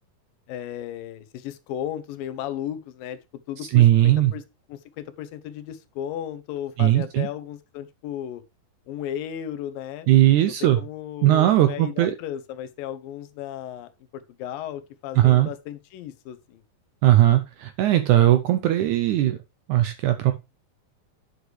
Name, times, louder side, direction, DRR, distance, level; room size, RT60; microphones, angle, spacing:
voice 1, 0.5-3.2 3.5-4.4 4.7-8.4 8.9-10.1 10.5-16.6, left 10 dB, 80° left, 2.5 m, -35 dB
voice 2, 3.7-4.3 6.8-7.3 10.1-10.8 11.2-12.1 15.2-15.5 17.0-19.4 19.7-20.3, right 14 dB, 80° right, 1.8 m, -18 dB
9.6 x 6.5 x 3.3 m
omnidirectional pair, 4.1 m